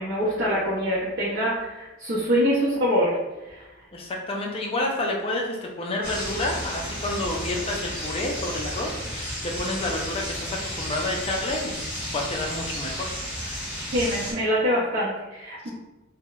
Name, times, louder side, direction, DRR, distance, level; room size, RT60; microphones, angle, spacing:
voice 1, 0.0-3.2 3.4-3.6 13.9-15.7, equal, 55° right, -8 dB, 0.6 m, -24 dB
voice 2, 3.9-13.1 15.6-15.7, left 2 dB, 30° left, 0 dB, 0.3 m, -29 dB
sound 1, 6.0-14.3, equal, 5° right, 0.8 m, -33 dB
2.7 x 2.0 x 2.3 m, 1.0 s
head